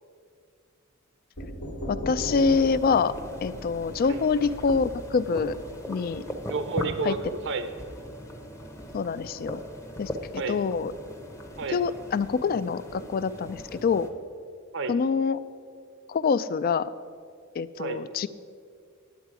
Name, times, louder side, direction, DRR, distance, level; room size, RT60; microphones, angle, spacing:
sound 1, 1.4-5.1, equal, 80° left, 1.3 m, -38 dB
voice 1, 1.9-3.1 3.4-5.6 5.9-6.2 7.0-7.2 8.9-9.6 10.0-10.1 10.5-10.9 11.7-14.1 14.9-15.4 16.1-16.9 17.6-18.3, left 5 dB, 45° left, 16 dB, 0.3 m, -25 dB
sound 2, 2.1-14.1, equal, 15° left, 0.7 m, -39 dB
voice 2, 6.5-7.7 10.3-10.6 11.6-11.8 14.7-14.9 17.8-18.0, right 4 dB, 60° right, 9 dB, 0.6 m, -30 dB
10.5 x 8.2 x 4.8 m, 2.2 s
head